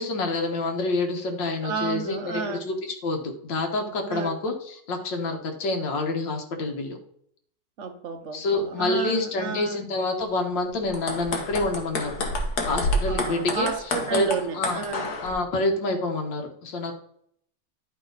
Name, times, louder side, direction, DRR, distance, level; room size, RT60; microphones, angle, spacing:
voice 1, 0.0-2.7 3.0-7.0 8.3-12.2 12.7-13.7 14.1-14.3 14.5-14.8 15.2-16.9, left 2 dB, 80° left, 3 dB, 2.0 m, -27 dB
voice 2, 1.6-2.6 4.1-4.4 7.8-9.8 13.1-15.1, right 5 dB, 55° right, 7 dB, 0.9 m, -31 dB
sound 1, 10.8-15.3, left 1 dB, 60° left, 1.8 m, -29 dB
11.0 x 5.1 x 3.9 m, 0.69 s
omnidirectional pair, 2.0 m